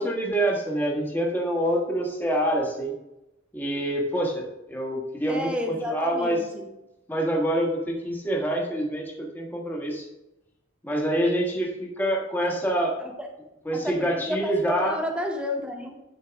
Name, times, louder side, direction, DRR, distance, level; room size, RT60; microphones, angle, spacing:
voice 1, 0.0-2.9 3.5-6.5 7.1-10.1 10.8-13.0 13.6-15.0, right 1 dB, 10° left, -2 dB, 1.4 m, -26 dB
voice 2, 5.3-6.7 13.0-13.3 13.7-16.0, left 1 dB, 5° right, 2 dB, 0.8 m, -31 dB
10.5 x 4.6 x 3.5 m, 0.92 s
head